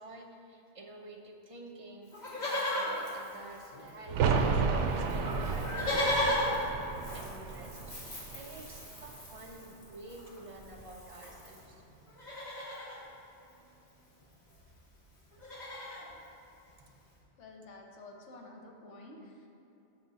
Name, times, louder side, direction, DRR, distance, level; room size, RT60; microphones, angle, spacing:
voice 1, 0.0-7.8 8.3-11.8, right 2 dB, 40° right, 1 dB, 0.6 m, -50 dB
Livestock farm animals working animals, 2.1-4.1 4.4-4.5 4.7-11.6 12.1-13.0 14.2-14.3 14.5-14.8 15.1-16.1 16.7-16.8, left 1 dB, 40° left, 1.4 m, -36 dB
sound 1, 4.1-9.6 9.9-10.0, right 5 dB, 90° right, 0.9 m, -32 dB
voice 2, 17.4-19.5, left 2 dB, 85° left, 1 dB, 1.2 m, -50 dB
8.0 x 5.9 x 4.0 m, 2.9 s
omnidirectional pair, 1.2 m